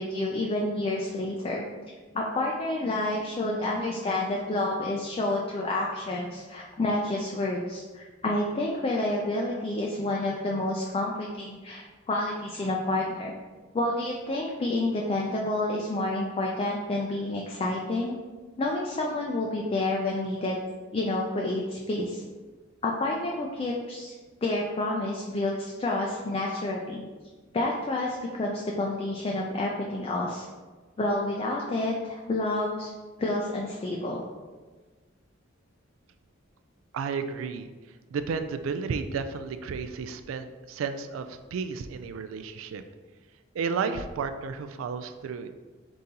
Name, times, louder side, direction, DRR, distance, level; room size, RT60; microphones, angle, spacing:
voice 1, 0.0-1.6 2.1-13.4 13.7-18.2 18.6-20.6 20.9-22.2 22.8-24.1 24.4-27.0 27.5-30.5 31.0-32.9 33.2-34.2, left 2 dB, 30° left, -1 dB, 0.3 m, -29 dB
voice 2, 36.9-37.7 38.1-42.8 43.5-45.5, right 5 dB, 85° right, 9 dB, 0.3 m, -32 dB
3.9 x 3.7 x 2.8 m, 1.3 s
head